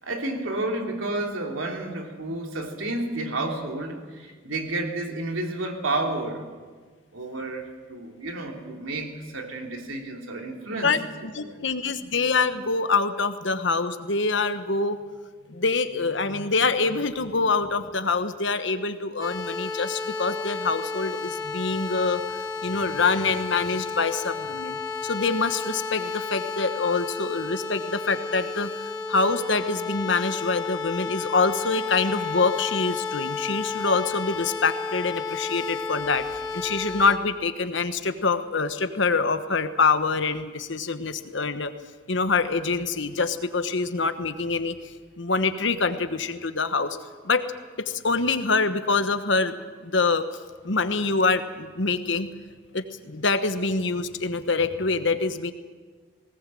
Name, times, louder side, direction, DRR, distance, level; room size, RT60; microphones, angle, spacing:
voice 1, 0.0-6.5 7.1-10.9 11.4-11.7, right 2 dB, 80° right, 2 dB, 3.1 m, -31 dB
voice 2, 11.3-15.0 15.5-22.2 22.6-28.7 29.1-41.7 42.1-47.0 47.2-47.4 47.8-49.5 49.8-50.2 50.6-52.3 52.7-55.5, left 4 dB, 65° left, 10 dB, 1.2 m, -25 dB
sound 1, 19.2-37.2, left 4 dB, 15° left, 2.1 m, -32 dB
19.0 x 19.0 x 7.7 m, 1.5 s
head